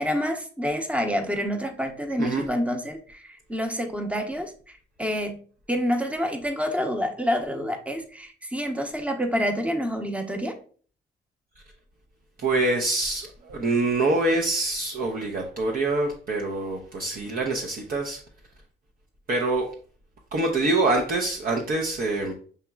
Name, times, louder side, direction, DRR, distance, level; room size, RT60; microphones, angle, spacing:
voice 1, 0.0-5.4 5.7-10.6, equal, 5° right, 5 dB, 0.8 m, -28 dB
voice 2, 12.4-18.2 19.3-19.7 20.3-22.3, right 2 dB, 50° right, 0 dB, 0.8 m, -25 dB
6.6 x 2.9 x 2.3 m, 0.43 s
cardioid pair, 90°, 20 cm